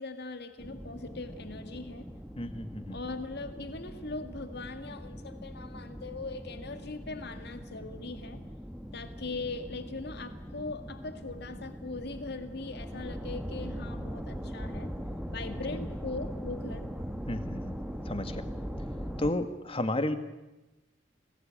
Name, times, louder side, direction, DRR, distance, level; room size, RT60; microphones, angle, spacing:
voice 1, 0.0-2.1 2.9-8.4 8.9-14.9 15.3-16.9, left 3 dB, 60° left, 8 dB, 2.0 m, -40 dB
sound 1, 0.6-19.3, equal, 5° right, 2.0 m, -40 dB
voice 2, 2.4-3.0 17.3-17.8 18.1-18.4 19.2-20.2, left 1 dB, 30° left, 9 dB, 1.9 m, -32 dB
29.0 x 20.5 x 8.9 m, 1.0 s
head